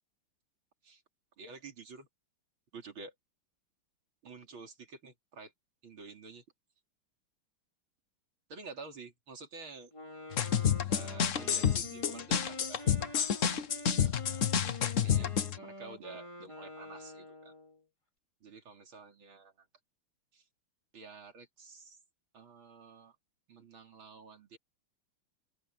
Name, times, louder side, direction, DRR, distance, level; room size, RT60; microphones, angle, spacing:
voice 1, 1.4-2.1 2.7-3.1 4.2-5.5 5.8-6.4 8.5-9.9 10.8-13.6 14.0-17.5 18.4-19.7 20.3-20.5 20.9-22.0 22.3-23.2 23.5-24.6, right 4 dB, 70° right, 3.9 m, -50 dB
Wind instrument woodwind instrument, 9.9-17.8, left 1 dB, 15° left, 3.3 m, -47 dB
sound 1, 10.3-15.6, left 8 dB, 50° left, 1.0 m, -29 dB
open air
omnidirectional pair, 2.3 m